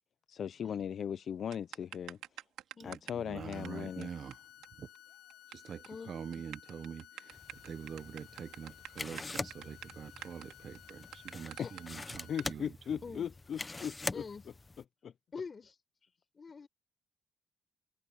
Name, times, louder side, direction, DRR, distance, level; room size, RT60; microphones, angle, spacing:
voice 1, 0.3-2.2 2.8-4.1 11.6-11.7 12.3-14.2 15.0-15.1, left 8 dB, 60° left, 0.4 m, -38 dB
sound 1, 1.5-3.2 3.5-3.7 4.0-4.1 4.3-4.4 4.6-4.7 4.9-5.5 5.8-6.0 6.3-11.8 12.4-12.5, right 13 dB, 90° right, 3.1 m, -47 dB
voice 2, 2.8-4.4 4.8-4.9 5.5-12.8 13.1-13.2, right 7 dB, 55° right, 0.9 m, -45 dB
sound 2, 3.5-12.5, left 13 dB, 90° left, 2.1 m, -56 dB
sound 3, 7.3-14.8, left 3 dB, 20° left, 0.8 m, -44 dB
voice 3, 14.1-14.4 15.3-15.7 16.3-16.7, left 5 dB, 35° left, 4.5 m, -45 dB
cardioid pair, 90°, 0 cm